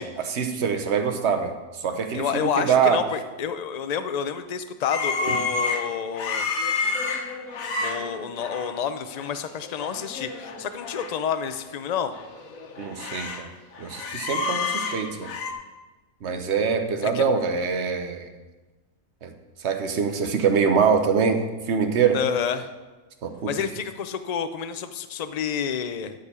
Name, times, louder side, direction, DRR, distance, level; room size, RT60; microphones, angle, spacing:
voice 1, 0.0-3.0 5.3-5.4 12.8-13.5 13.8-15.3 16.2-18.3 19.2-19.3 19.6-22.2 23.2-23.5, right 6 dB, 55° right, 7 dB, 1.2 m, -24 dB
voice 2, 2.1-6.5 7.8-12.1 17.0-17.2 22.1-22.7 23.5-26.1, left 7 dB, 50° left, 10 dB, 0.5 m, -29 dB
sound 1, 4.9-8.8 9.1-9.4 9.6-11.1 11.5-11.6 12.1-13.5 13.7-15.5, left 4 dB, 70° left, 1.5 m, -30 dB
13.5 x 5.2 x 6.8 m, 1.2 s
omnidirectional pair, 1.5 m